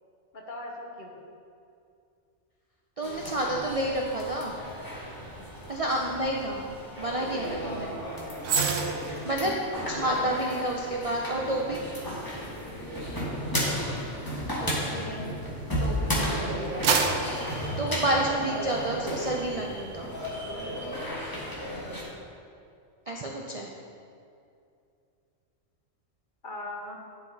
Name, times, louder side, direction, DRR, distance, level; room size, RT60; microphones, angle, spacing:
voice 1, 0.3-1.2 9.6-9.8 14.6-15.3 26.4-27.0, left 2 dB, 45° left, 0 dB, 1.0 m, -39 dB
sound 1, 3.0-22.0, equal, 15° left, 1.3 m, -34 dB
voice 2, 3.0-4.6 5.7-6.6 7.0-7.9 9.0-9.5 9.9-11.8 15.8-16.7 17.8-20.1 23.1-23.7, right 1 dB, 45° right, -1 dB, 0.5 m, -29 dB
sound 2, 8.4-15.8 16.3-18.7 19.0-19.2, right 5 dB, 80° right, 1.0 m, -33 dB
10.0 x 4.8 x 4.0 m, 2.5 s
omnidirectional pair, 1.3 m